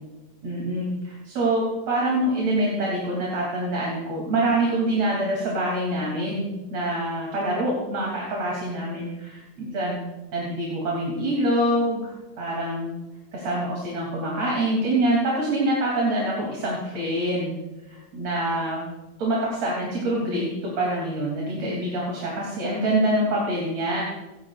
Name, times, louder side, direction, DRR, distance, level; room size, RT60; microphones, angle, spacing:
voice 1, 0.4-10.0 10.3-12.9 13.3-17.5 17.9-18.8 19.2-24.0, right 1 dB, 60° right, -4 dB, 4.0 m, -25 dB
30.0 x 12.5 x 2.5 m, 1.1 s
omnidirectional pair, 3.3 m